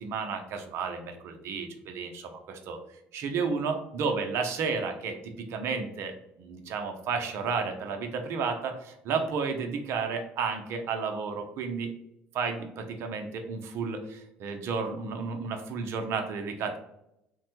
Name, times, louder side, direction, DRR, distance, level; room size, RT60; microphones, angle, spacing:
voice 1, 0.0-2.8 3.1-11.9 12.3-16.8, right 5 dB, 60° right, 5 dB, 0.6 m, -32 dB
3.3 x 2.1 x 3.0 m, 0.81 s
hypercardioid pair, 65°, 5 cm